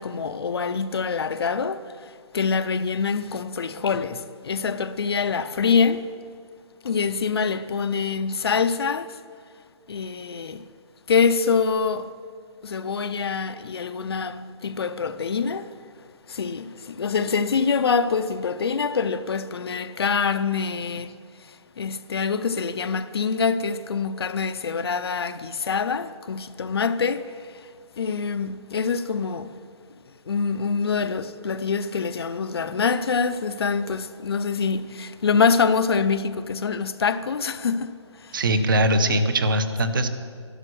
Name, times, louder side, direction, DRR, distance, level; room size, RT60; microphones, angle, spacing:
voice 1, 0.0-1.8 2.3-6.1 6.8-9.1 9.9-10.6 11.1-12.1 12.6-15.7 16.3-21.1 21.8-27.4 28.0-29.6 30.3-38.4, left 5 dB, 55° left, 0.6 m, -25 dB
voice 2, 38.3-40.1, right 1 dB, 45° right, 1.1 m, -21 dB
12.0 x 12.0 x 6.3 m
hypercardioid pair, 175°, 16 cm